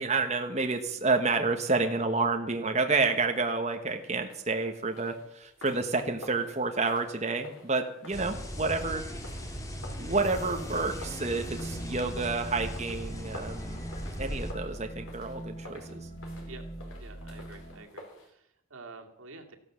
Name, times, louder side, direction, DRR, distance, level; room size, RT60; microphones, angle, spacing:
voice 1, 0.0-9.0 10.0-13.8 14.2-16.1, right 3 dB, 35° right, 5 dB, 1.2 m, -29 dB
sound 1, 4.2-18.3, left 1 dB, 90° left, 4.4 m, -50 dB
sound 2, 8.1-14.5, equal, 15° left, 1.9 m, -38 dB
sound 3, 10.2-17.8, right 1 dB, 30° left, 2.5 m, -43 dB
voice 2, 17.0-19.6, right 3 dB, 90° right, 3 dB, 2.4 m, -48 dB
15.0 x 12.0 x 7.4 m, 0.71 s
head